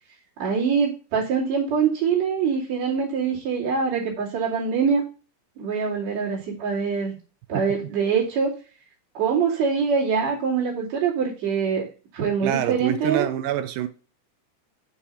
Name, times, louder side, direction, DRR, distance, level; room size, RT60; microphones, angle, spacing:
voice 1, 0.4-5.0 5.6-7.2 7.5-8.6 9.1-11.9 12.1-13.5, right 6 dB, 50° right, 3.6 m, -24 dB
voice 2, 12.4-13.9, right 12 dB, 75° right, 2.2 m, -26 dB
6.6 x 5.4 x 5.6 m
omnidirectional pair, 4.3 m